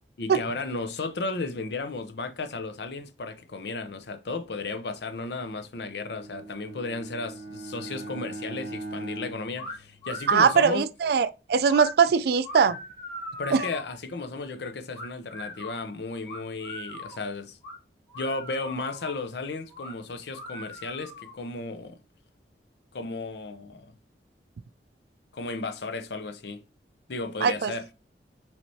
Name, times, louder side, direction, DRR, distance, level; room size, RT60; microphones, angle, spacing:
voice 1, 0.2-10.9 13.4-17.6 18.1-22.0 22.9-23.9 25.3-26.6 27.1-27.9, left 3 dB, 70° left, 0.6 m, -34 dB
Bowed string instrument, 5.9-10.5, right 2 dB, 20° right, 2.6 m, -40 dB
sound 1, 9.6-9.7 10.0-10.8 11.6-11.9 12.4-13.9 14.9-15.8 16.3-17.2 17.6-17.7 18.1-19.2 19.7-19.9 20.3-21.4, left 1 dB, 15° left, 2.5 m, -40 dB
voice 2, 10.3-12.8 13.5-13.7 27.4-27.7, right 6 dB, 60° right, 0.3 m, -21 dB
6.0 x 3.3 x 2.7 m
head